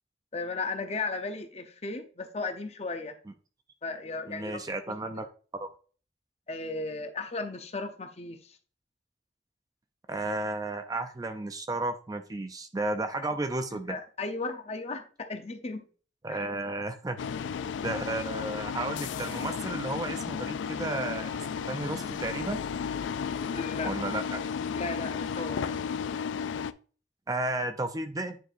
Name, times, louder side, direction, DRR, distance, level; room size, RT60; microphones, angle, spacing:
voice 1, 0.3-3.2 3.8-4.6 4.9-5.0 6.5-8.6 13.7-15.9 16.3-16.5 23.5-23.9 24.7-25.7, left 3 dB, 35° left, 7 dB, 0.7 m, -35 dB
voice 2, 4.3-5.3 5.5-5.7 10.1-14.0 16.2-17.2 17.8-21.3 21.7-22.6 23.8-24.4 27.3-28.4, right 2 dB, 20° right, 7 dB, 0.4 m, -33 dB
sound 1, 17.2-26.7, left 6 dB, 80° left, 0.3 m, -33 dB
9.1 x 4.6 x 2.5 m, 0.39 s
head